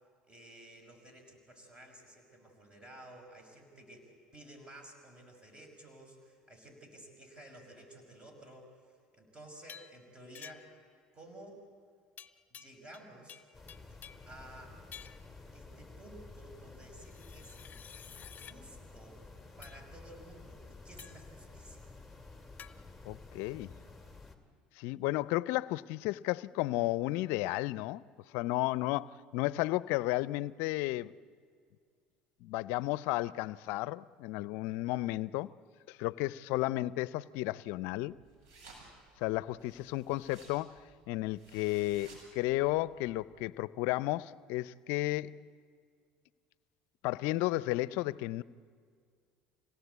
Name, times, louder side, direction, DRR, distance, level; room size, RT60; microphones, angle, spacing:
voice 1, 0.3-10.7 11.1-11.6 12.5-13.4 13.9-14.0 14.3-14.8 15.5-17.6 18.3-19.2 19.6-21.9, right 1 dB, 25° right, 5.9 m, -53 dB
sound 1, 9.7-10.0 10.3-10.8 12.2-13.0 13.3-14.3 14.9-15.3 17.0-18.6 19.6-19.8 21.0-21.3 22.6-22.7, left 8 dB, 40° left, 1.0 m, -51 dB
sound 2, 13.5-24.4, left 3 dB, ahead, 2.8 m, -52 dB
voice 2, 23.0-23.7 24.8-28.0 28.3-31.1 32.4-35.5 35.9-38.2 39.2-40.8 41.1-45.4 47.0-48.4, left 18 dB, 70° left, 0.5 m, -33 dB
sound 3, 38.0-43.2, right 3 dB, 70° right, 8.0 m, -58 dB
26.0 x 17.5 x 8.2 m
hypercardioid pair, 80°, 4 cm